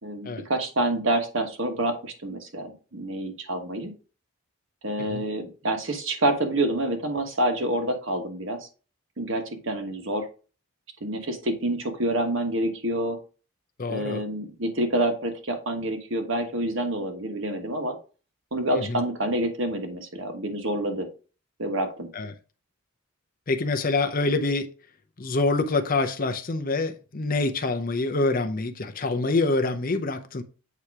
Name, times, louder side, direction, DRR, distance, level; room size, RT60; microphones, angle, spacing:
voice 1, 0.0-3.9 4.8-8.6 9.2-10.3 11.0-13.2 13.9-18.0 18.5-21.1 21.6-22.1, right 1 dB, 55° right, 1.2 m, -27 dB
voice 2, 13.8-14.2 18.8-19.0 22.1-22.3 23.5-24.7 25.2-30.4, left 3 dB, 40° left, 0.6 m, -26 dB
8.4 x 2.9 x 4.7 m
head